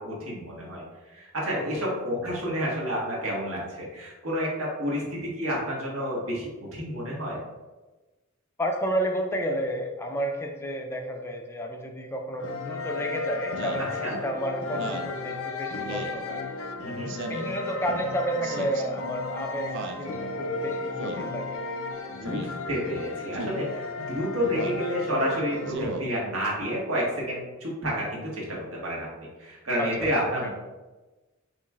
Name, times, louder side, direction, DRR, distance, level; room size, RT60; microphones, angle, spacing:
voice 1, 0.0-7.4 13.8-14.2 16.8-17.1 22.1-29.1 29.4-30.5, equal, 80° right, -4 dB, 1.3 m, -30 dB
voice 2, 8.6-16.4 17.3-21.6 25.8-26.1 29.8-30.1 30.4-30.5, equal, 10° left, 2 dB, 0.4 m, -31 dB
sound 1, 12.4-25.7, left 3 dB, 80° left, 0.5 m, -34 dB
Speech synthesizer, 13.6-13.9 14.7-15.1 15.9-16.2 17.1-17.5 18.4-18.8 19.7-20.0 21.0-21.3 22.2-22.5 23.3-23.6 24.5-24.8 25.6-26.0, right 2 dB, 60° right, 0.4 m, -35 dB
4.8 x 3.0 x 2.3 m, 1.2 s
head